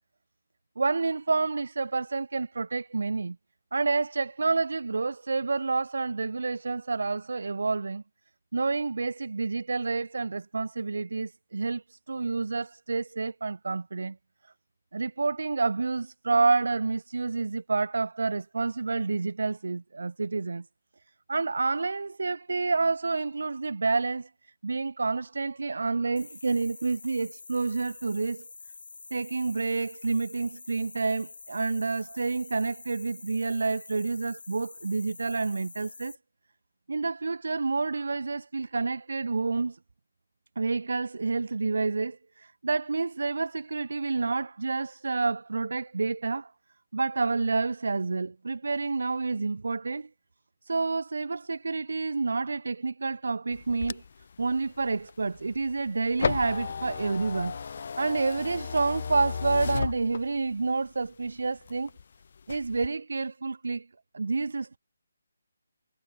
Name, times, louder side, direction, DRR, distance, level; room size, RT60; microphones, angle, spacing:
voice 1, 0.8-3.4 3.7-8.0 8.5-14.2 14.9-20.6 21.3-24.3 24.6-28.4 29.1-36.2 36.9-39.8 40.6-46.5 46.9-50.1 50.7-54.0 54.4-57.6 58.0-61.9 62.5-63.9 64.1-64.8, right 3 dB, 75° right, 0.3 m, -29 dB
sound 1, 26.2-36.2, left 4 dB, 70° left, 2.4 m, -47 dB
sound 2, 53.5-60.6 61.0-62.0 62.4-62.9, left 6 dB, 50° left, 0.4 m, -34 dB
hypercardioid pair, 170°, 0 cm